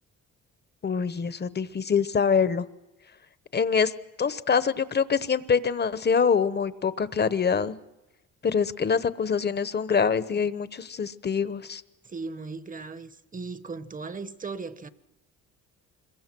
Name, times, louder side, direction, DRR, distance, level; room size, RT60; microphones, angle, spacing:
voice 1, 0.8-2.7 3.5-3.9 4.2-7.8 8.4-11.8, left 6 dB, 35° left, 1.0 m, -25 dB
voice 2, 12.0-14.9, right 4 dB, 25° right, 1.0 m, -37 dB
26.0 x 22.5 x 6.2 m
cardioid pair, 90°, 30 cm